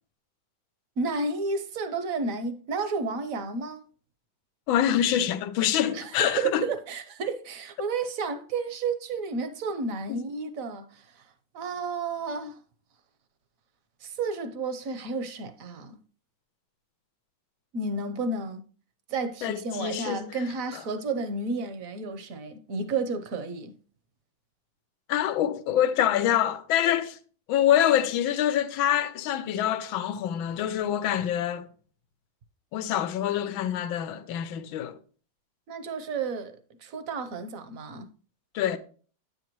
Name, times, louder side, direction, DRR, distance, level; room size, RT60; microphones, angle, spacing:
voice 1, 1.0-3.8 5.9-11.3 11.5-12.6 14.0-16.0 17.7-18.6 19.1-23.7 35.7-38.1, right 4 dB, 55° right, 1.0 m, -32 dB
voice 2, 4.7-6.7 10.1-10.3 19.4-20.3 20.7-20.8 25.1-27.2 27.5-31.7 32.7-35.0 38.5-38.8, left 10 dB, 80° left, 1.5 m, -25 dB
9.3 x 7.8 x 3.0 m
omnidirectional pair, 2.2 m